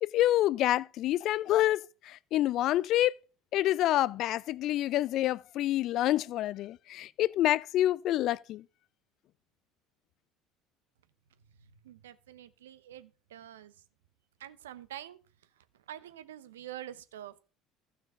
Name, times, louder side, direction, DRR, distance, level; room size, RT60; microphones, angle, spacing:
voice 1, 0.0-3.2 3.5-8.6, left 14 dB, 55° left, 0.4 m, -27 dB
voice 2, 11.5-13.7 14.4-15.2 15.9-17.3, right 11 dB, 80° right, 0.7 m, -46 dB
15.0 x 5.9 x 3.7 m
hypercardioid pair, 65°, 0 cm